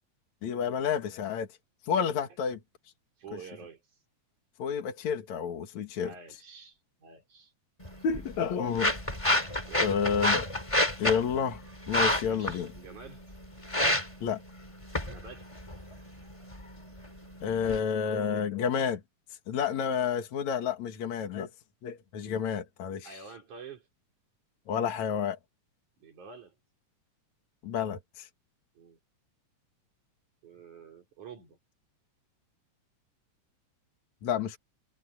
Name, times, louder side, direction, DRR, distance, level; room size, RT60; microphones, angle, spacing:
voice 1, 0.4-1.5 1.8-2.6 4.6-6.1 8.0-9.0 9.8-10.5 11.0-11.6 11.9-12.7 14.2-14.4 17.4-19.0 19.5-21.5 21.8-23.2 24.7-25.4 27.6-28.3 34.2-34.6, left 7 dB, 70° left, 3.3 m, -30 dB
voice 2, 3.2-3.8 6.0-7.5 9.7-10.2 12.2-13.2 15.0-15.6 23.0-23.9 26.0-26.6 28.8-29.0 30.4-31.6, right 6 dB, 85° right, 5.6 m, -48 dB
sound 1, 7.8-17.8, left 1 dB, 10° left, 3.3 m, -31 dB
omnidirectional pair, 3.4 m